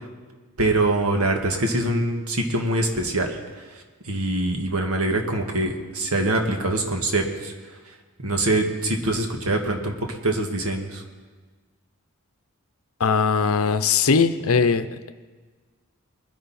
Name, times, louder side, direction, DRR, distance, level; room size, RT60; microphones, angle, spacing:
voice 1, 0.6-3.4 4.1-7.5 8.2-11.0, right 2 dB, 90° right, 3 dB, 1.7 m, -24 dB
voice 2, 13.0-15.1, left 5 dB, 80° left, 12 dB, 0.7 m, -20 dB
21.5 x 10.5 x 4.2 m, 1.4 s
head